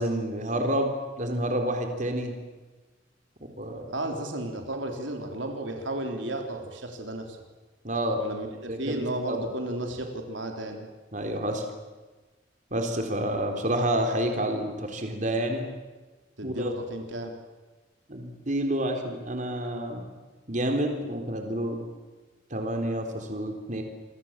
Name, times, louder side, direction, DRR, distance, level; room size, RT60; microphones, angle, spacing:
voice 1, 0.0-2.3 3.6-3.9 7.8-8.2 8.7-9.5 11.1-11.6 12.7-15.7 16.4-16.7 18.1-20.0 20.5-21.8 22.5-23.8, right 1 dB, 40° right, 4 dB, 3.8 m, -29 dB
voice 2, 3.9-7.4 8.2-8.5 8.8-10.9 16.4-17.4, right 1 dB, 85° right, 3 dB, 3.8 m, -33 dB
28.0 x 24.5 x 7.6 m, 1.2 s
head